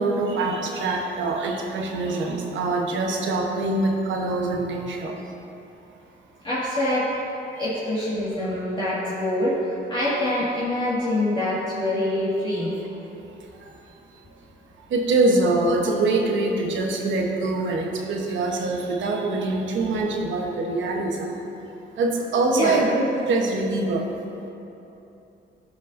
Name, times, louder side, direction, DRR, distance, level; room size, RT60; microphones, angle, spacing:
voice 1, 0.0-5.2 11.0-11.1 14.9-21.4 22.0-24.1, right 2 dB, 75° right, 1 dB, 1.1 m, -24 dB
voice 2, 6.4-7.1 7.6-12.7 22.5-22.8, left 1 dB, 25° left, -11 dB, 1.9 m, -25 dB
15.5 x 5.3 x 2.6 m, 2.9 s
cardioid pair, 90°, 20 cm